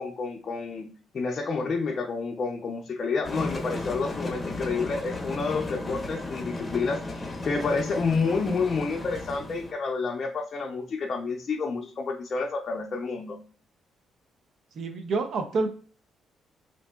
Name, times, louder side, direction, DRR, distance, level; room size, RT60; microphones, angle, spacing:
voice 1, 0.0-13.4, left 4 dB, 45° left, 0 dB, 0.5 m, -29 dB
sound 1, 3.2-9.7, left 2 dB, 20° left, 0.7 m, -35 dB
voice 2, 14.8-15.7, right 3 dB, 65° right, 6 dB, 0.5 m, -27 dB
3.5 x 2.6 x 2.2 m, 0.42 s
cardioid pair, 90°, 0 cm